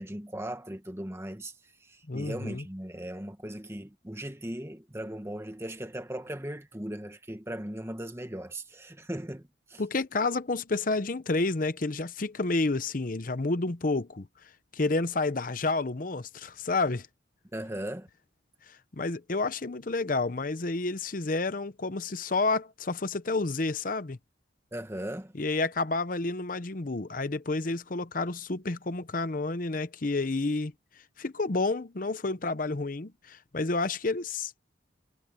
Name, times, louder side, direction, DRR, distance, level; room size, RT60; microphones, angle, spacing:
voice 1, 0.0-1.5 1.8-9.8 17.5-18.1 24.7-25.3, right 1 dB, 15° right, 1.5 m, -38 dB
voice 2, 2.1-2.6 9.8-14.3 14.7-17.1 18.7-24.2 25.4-30.7 31.2-34.5, left 3 dB, 45° left, 0.8 m, -30 dB
head